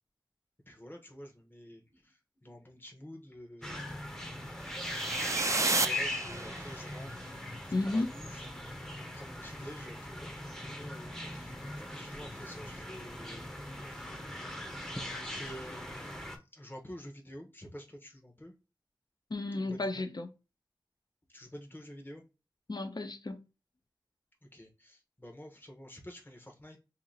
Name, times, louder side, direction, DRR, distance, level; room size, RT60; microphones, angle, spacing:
voice 1, 0.7-3.8 4.3-4.4 5.5-7.3 7.8-8.4 9.1-11.6 11.9-13.5 13.9-14.1 14.9-18.5 19.7-20.0 21.3-22.2 24.5-26.8, equal, 25° left, 1.0 m, -49 dB
sound 1, 3.6-16.4, left 1 dB, 5° left, 0.8 m, -40 dB
sound 2, 4.7-6.9, right 3 dB, 40° right, 0.4 m, -32 dB
voice 2, 7.7-8.1 19.3-20.3 22.7-23.4, left 2 dB, 55° left, 0.6 m, -33 dB
2.8 x 2.7 x 3.9 m
wide cardioid pair, 40°, 8 cm